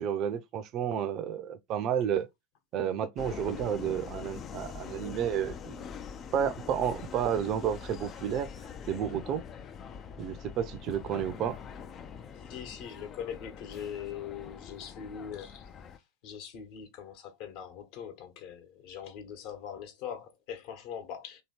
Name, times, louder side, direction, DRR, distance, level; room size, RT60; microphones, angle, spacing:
voice 1, 0.0-2.3 2.7-5.9 6.3-8.5 8.9-9.4 10.2-11.6, right 9 dB, 35° right, 0.6 m, -31 dB
Subway metro underground, 3.2-16.0, left 7 dB, 25° left, 0.5 m, -44 dB
voice 2, 12.4-15.7 16.2-21.4, left 8 dB, 45° left, 1.2 m, -41 dB
3.1 x 2.9 x 4.3 m
figure-of-eight pair, 90°, 0 cm